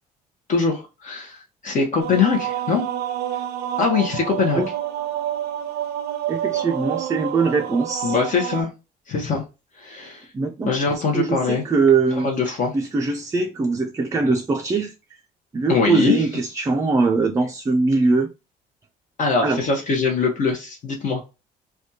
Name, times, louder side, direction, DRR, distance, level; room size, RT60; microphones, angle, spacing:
voice 1, 0.5-1.4 1.6-2.8 3.8-4.6 8.0-8.7 9.1-9.4 9.8-10.3 10.6-11.6 12.2-12.7 15.7-16.2 19.2-21.2, left 5 dB, 50° left, 0.8 m, -22 dB
sound 1, 2.0-8.6, right 11 dB, 80° right, 0.5 m, -28 dB
voice 2, 6.3-8.2 10.3-14.9 15.5-18.3 19.4-19.6, right 3 dB, 20° right, 0.4 m, -22 dB
3.3 x 2.3 x 2.7 m
cardioid pair, 110°, 17 cm